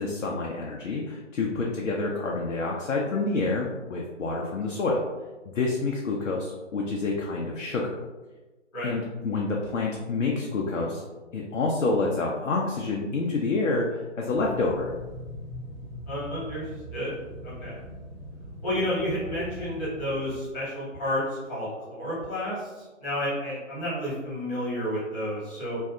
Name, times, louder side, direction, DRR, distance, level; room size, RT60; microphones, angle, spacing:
voice 1, 0.0-5.0 5.4-8.0 8.8-11.0 11.3-14.9, left 3 dB, 80° left, -2 dB, 0.5 m, -28 dB
sound 1, 14.3-20.4, equal, 20° right, 0.7 m, -41 dB
voice 2, 16.1-17.1 17.4-17.8 18.6-25.8, equal, 20° left, -10 dB, 1.1 m, -31 dB
2.6 x 2.3 x 2.3 m, 1.2 s
figure-of-eight pair, 135°, 38 cm